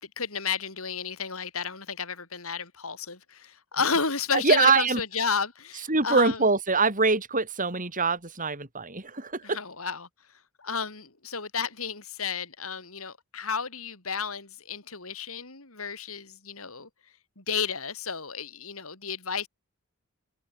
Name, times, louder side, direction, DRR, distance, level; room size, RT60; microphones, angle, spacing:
voice 1, 0.2-6.4 9.4-10.1 10.6-16.9 17.4-19.5, left 5 dB, 75° left, 4.5 m, -32 dB
voice 2, 4.3-5.0 5.9-9.6, right 4 dB, 40° right, 5.8 m, -24 dB
head